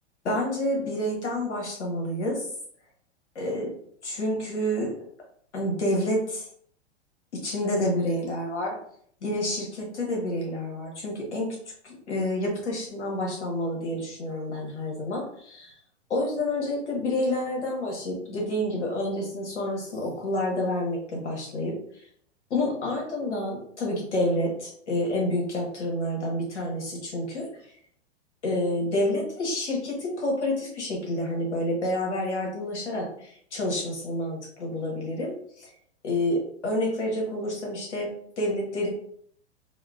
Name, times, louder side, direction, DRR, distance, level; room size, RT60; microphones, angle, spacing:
voice 1, 0.2-2.4 3.3-3.7 4.0-4.9 5.5-6.5 7.4-8.8 9.2-11.5 11.8-15.7 16.1-22.0 22.5-27.5 28.4-35.7 36.0-38.1 38.4-38.9, left 1 dB, 80° left, -1 dB, 1.4 m, -28 dB
4.3 x 2.1 x 2.4 m, 0.63 s
hypercardioid pair, 110°, 34 cm